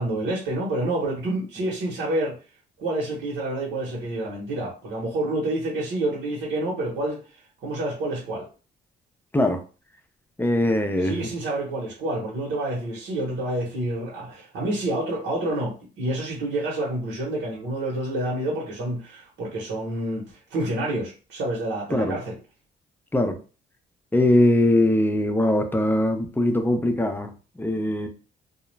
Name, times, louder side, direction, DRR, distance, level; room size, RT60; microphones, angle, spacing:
voice 1, 0.0-2.4 2.8-7.2 7.6-8.5 11.0-22.4, right 1 dB, 75° right, 0.9 m, -28 dB
voice 2, 10.4-11.2 21.9-22.1 23.1-23.4 24.1-27.3 27.6-28.1, left 1 dB, 10° left, 0.4 m, -21 dB
2.3 x 2.1 x 3.1 m
cardioid pair, 90°, 20 cm